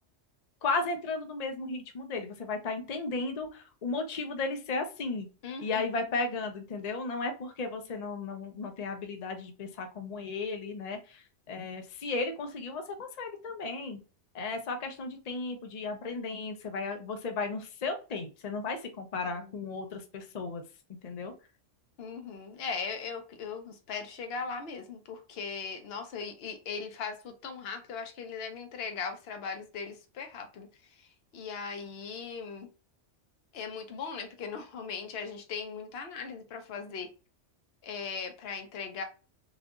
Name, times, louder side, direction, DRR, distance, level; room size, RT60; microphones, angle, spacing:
voice 1, 0.6-5.3 5.6-14.0 14.3-20.6 21.0-21.3, left 3 dB, 40° left, 0.6 m, -35 dB
voice 2, 5.4-5.9 19.4-19.5 22.0-30.7 31.3-32.7 33.5-37.1 37.8-39.0, left 5 dB, 60° left, 0.9 m, -39 dB
3.5 x 2.4 x 2.3 m
omnidirectional pair, 1.3 m